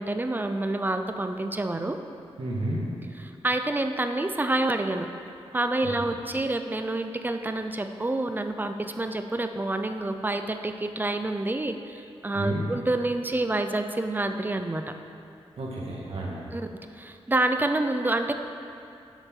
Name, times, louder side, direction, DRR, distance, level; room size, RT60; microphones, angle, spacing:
voice 1, 0.0-2.0 3.4-5.1 5.5-14.9 16.5-16.6 17.0-18.3, right 2 dB, 20° right, 7 dB, 0.4 m, -28 dB
voice 2, 2.4-2.9 5.8-5.9 12.3-12.7 15.6-16.4, right 1 dB, 70° right, -4 dB, 1.8 m, -31 dB
11.0 x 7.1 x 3.8 m, 2.5 s
wide cardioid pair, 165°, 11 cm